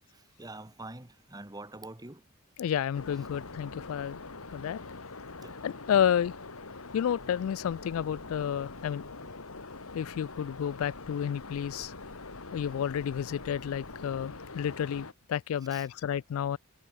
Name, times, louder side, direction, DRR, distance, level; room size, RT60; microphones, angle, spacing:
voice 1, 0.1-2.3 5.4-5.6 15.7-15.9, right 2 dB, 20° right, 1.8 m, -45 dB
voice 2, 2.6-4.2 4.5-4.8 5.6-6.3 6.9-9.0 9.9-11.9 12.5-16.6, left 9 dB, 70° left, 0.3 m, -30 dB
sound 1, 2.9-15.1, left 3 dB, 85° left, 2.2 m, -44 dB
head